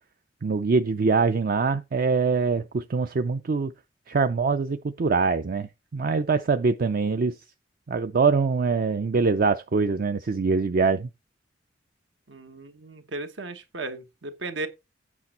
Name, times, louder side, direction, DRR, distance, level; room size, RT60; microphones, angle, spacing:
voice 1, 0.4-3.7 4.1-5.7 5.9-7.3 7.9-11.1, right 4 dB, 50° right, 0.5 m, -23 dB
voice 2, 12.3-14.7, right 2 dB, 75° right, 1.3 m, -36 dB
8.5 x 6.0 x 4.3 m
head